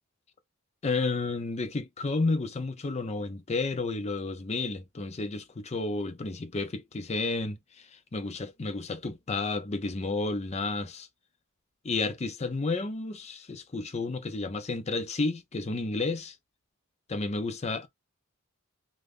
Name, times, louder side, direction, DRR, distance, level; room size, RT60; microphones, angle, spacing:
voice 1, 0.8-11.1 11.8-16.4 17.1-17.9, left 3 dB, 30° left, 0.5 m, -31 dB
3.5 x 2.4 x 2.4 m
head